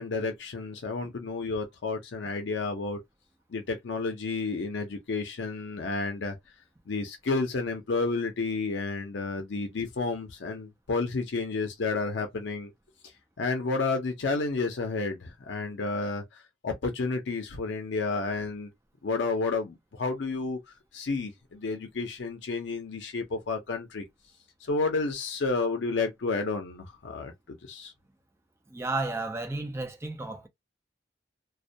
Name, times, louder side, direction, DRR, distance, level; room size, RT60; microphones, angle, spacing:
voice 1, 0.0-3.0 3.5-6.4 6.9-12.7 13.4-16.2 16.6-18.7 19.0-20.6 20.9-24.0 24.6-27.9, left 3 dB, 70° left, 0.5 m, -31 dB
voice 2, 28.7-30.5, right 2 dB, 15° right, 0.4 m, -32 dB
2.2 x 2.1 x 2.6 m
head